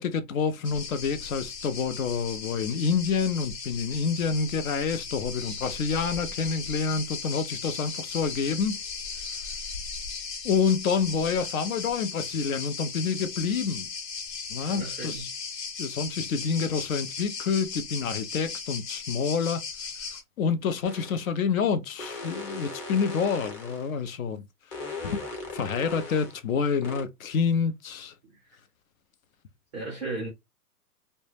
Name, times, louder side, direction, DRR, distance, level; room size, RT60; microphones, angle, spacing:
voice 1, 0.0-8.8 10.4-13.9 14.5-15.3 15.8-19.6 20.4-24.4 25.0-25.2 25.5-28.1, left 5 dB, 60° left, 0.5 m, -28 dB
sound 1, 0.6-20.2, left 5 dB, 80° left, 1.1 m, -37 dB
voice 2, 14.7-15.2 29.7-30.3, right 2 dB, 5° right, 0.4 m, -35 dB
sound 2, 20.8-21.3 22.0-23.9 24.7-26.4 26.8-27.0, left 3 dB, 20° left, 0.8 m, -38 dB
2.1 x 2.1 x 3.1 m
hypercardioid pair, 135°, 48 cm